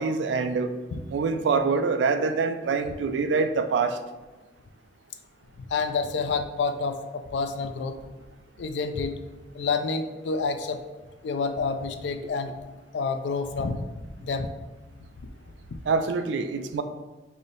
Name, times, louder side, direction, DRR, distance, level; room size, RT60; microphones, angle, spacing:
voice 1, 0.0-0.7 1.1-4.0 15.9-16.8, right 4 dB, 80° right, 9 dB, 0.3 m, -25 dB
voice 2, 5.7-8.0 8.6-9.2 9.5-10.8 11.2-12.5 12.9-13.8 14.2-14.5 15.7-15.8, left 4 dB, 75° left, 7 dB, 0.4 m, -28 dB
3.4 x 2.7 x 3.8 m, 1.2 s
head